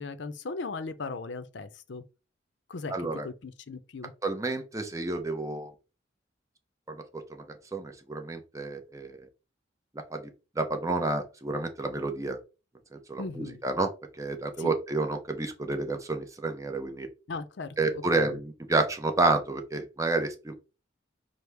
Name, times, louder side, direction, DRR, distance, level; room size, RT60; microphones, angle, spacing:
voice 1, 0.0-2.0 2.7-4.1 13.2-13.6 14.6-14.7 17.3-18.4, left 3 dB, 65° left, 0.5 m, -38 dB
voice 2, 2.9-3.3 4.2-5.7 6.9-7.0 7.7-9.1 10.1-10.2 10.6-12.4 13.1-13.9 14.2-17.1 17.8-20.5, right 3 dB, 15° right, 0.6 m, -29 dB
6.1 x 2.0 x 3.3 m
head